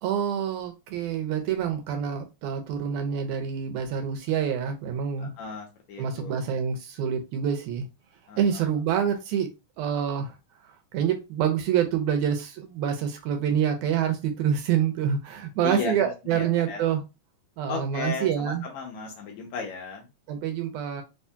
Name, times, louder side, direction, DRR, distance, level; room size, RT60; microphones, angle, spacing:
voice 1, 0.0-5.3 6.0-7.9 8.4-9.5 9.8-10.3 10.9-17.0 17.6-18.6 20.3-21.0, right 8 dB, 80° right, 5 dB, 2.1 m, -27 dB
voice 2, 5.2-6.4 8.3-8.6 15.6-16.8 17.7-20.1, left 5 dB, 75° left, 2 dB, 1.8 m, -35 dB
4.9 x 2.7 x 2.2 m, 0.26 s
omnidirectional pair, 3.6 m